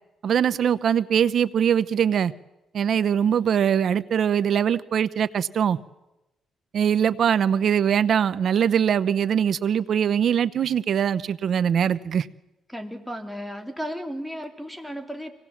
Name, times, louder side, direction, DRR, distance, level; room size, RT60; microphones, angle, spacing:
voice 1, 0.2-2.3 2.7-5.8 6.7-12.3, right 8 dB, 60° right, 17 dB, 0.8 m, -22 dB
voice 2, 12.7-15.3, equal, ahead, 6 dB, 2.7 m, -34 dB
25.0 x 18.5 x 7.3 m, 0.96 s
cardioid pair, 90°, 0 cm